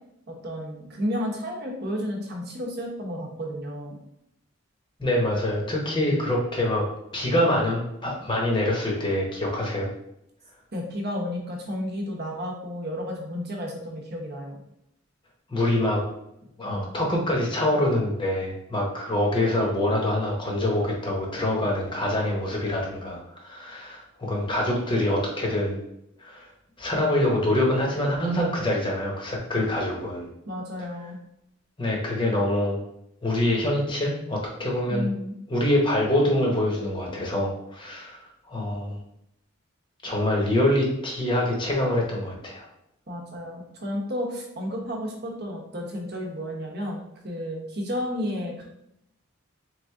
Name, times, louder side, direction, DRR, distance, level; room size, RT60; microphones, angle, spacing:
voice 1, 0.3-4.0 10.7-14.6 30.5-31.2 34.9-35.4 43.1-48.6, equal, 50° right, -1 dB, 0.9 m, -32 dB
voice 2, 5.0-6.9 7.1-9.9 15.5-16.0 16.6-25.8 26.2-26.5 26.8-30.3 31.8-32.8 33.2-35.1 35.5-38.2 38.5-39.0 40.0-42.7, left 1 dB, 25° left, -2 dB, 0.9 m, -25 dB
3.7 x 3.3 x 3.6 m, 0.79 s
head